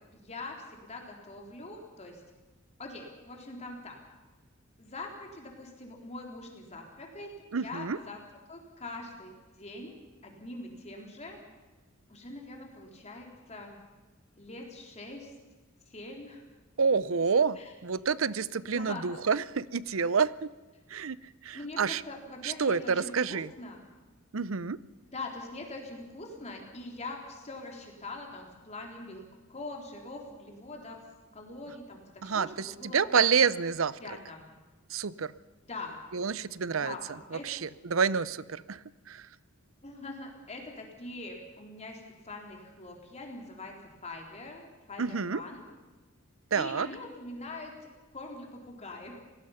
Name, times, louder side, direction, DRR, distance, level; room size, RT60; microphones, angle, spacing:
voice 1, 0.1-2.2 2.8-4.0 4.8-7.3 7.6-8.2 8.5-11.4 12.1-13.8 14.4-15.3 15.9-16.4 17.6-17.8 18.5-19.1 21.5-23.8 25.1-31.0 31.3-33.4 34.0-34.4 35.6-36.0 36.7-37.4 39.8-43.7 44.0-45.7 46.5-47.7 48.1-49.2, left 2 dB, 35° left, 1 dB, 3.5 m, -43 dB
voice 2, 7.5-8.0 16.8-20.5 20.9-21.2 21.4-22.0 22.4-23.5 24.3-24.8 32.2-34.0 34.9-35.3 36.1-36.9 37.3-38.8 39.1-39.2 45.0-45.4 46.5-46.9, right 5 dB, 70° right, 18 dB, 0.7 m, -28 dB
27.5 x 18.5 x 5.7 m, 1.2 s
head